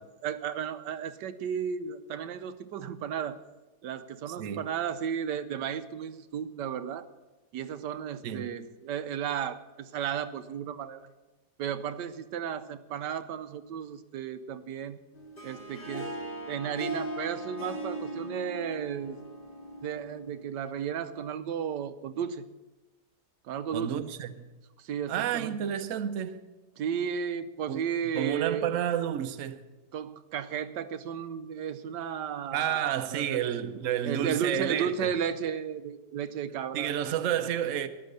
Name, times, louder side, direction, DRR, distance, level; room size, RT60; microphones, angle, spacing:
voice 1, 0.2-3.4 3.8-7.1 7.5-11.1 11.6-15.0 15.4-16.1 16.5-19.2 19.8-22.5 23.4-24.0 24.8-25.6 26.8-28.7 29.9-33.4 34.0-36.9, right 8 dB, 80° right, 1.3 m, -34 dB
voice 2, 4.3-4.7 8.2-8.5 23.7-24.5 25.1-26.4 27.7-27.8 28.1-29.6 32.5-35.1 36.7-37.9, right 10 dB, 55° right, 1.0 m, -30 dB
Harp, 15.1-20.4, right 1 dB, 30° left, 2.0 m, -39 dB
13.5 x 11.0 x 6.6 m
omnidirectional pair, 1.9 m